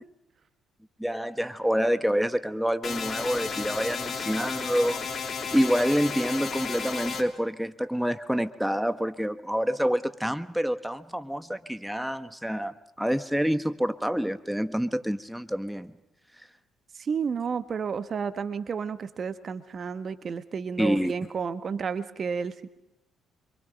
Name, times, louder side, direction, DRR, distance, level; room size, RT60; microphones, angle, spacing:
voice 1, 1.0-5.1 5.5-15.9 20.8-21.1, equal, ahead, 11 dB, 1.3 m, -27 dB
sound 1, 2.8-7.2, left 5 dB, 50° left, 3.0 m, -33 dB
voice 2, 17.0-22.7, right 6 dB, 50° right, 11 dB, 1.4 m, -31 dB
26.5 x 24.5 x 5.3 m, 0.90 s
hypercardioid pair, 55°, 0 cm